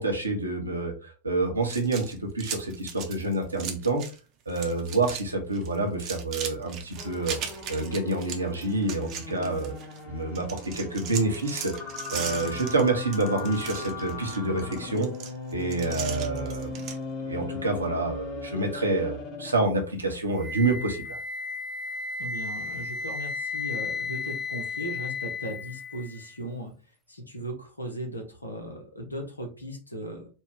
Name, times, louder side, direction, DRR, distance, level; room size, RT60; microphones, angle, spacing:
voice 1, 0.0-4.0 4.5-7.4 7.7-9.7 10.1-11.7 12.1-15.1 15.5-16.8 17.2-21.2, right 2 dB, 80° right, 2 dB, 1.0 m, -28 dB
sound 1, 1.6-4.2 4.5-5.2 5.5-10.0 10.4-17.0, right 8 dB, 40° right, 0.8 m, -38 dB
sound 2, 7.0-19.7, left 3 dB, 35° left, 1.4 m, -38 dB
Wind instrument woodwind instrument, 20.4-26.4, left 4 dB, 5° right, 0.5 m, -34 dB
voice 2, 22.2-26.7 27.1-30.3, equal, 80° left, 4 dB, 1.0 m, -37 dB
4.2 x 2.4 x 3.5 m, 0.35 s
figure-of-eight pair, 90°, 0 cm